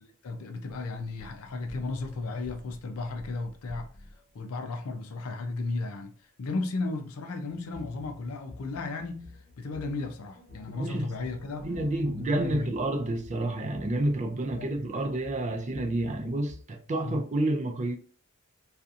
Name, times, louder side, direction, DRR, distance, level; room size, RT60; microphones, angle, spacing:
voice 1, 0.0-3.9 4.3-6.1 6.4-11.7 12.0-12.7 14.6-15.2 17.0-17.2, left 3 dB, 85° left, 0.5 m, -35 dB
sound 1, 0.9-4.4 7.5-16.6, left 2 dB, 45° left, 1.0 m, -50 dB
voice 2, 10.7-11.1 11.6-17.9, right 1 dB, 35° right, 0.4 m, -29 dB
2.7 x 2.4 x 2.4 m
head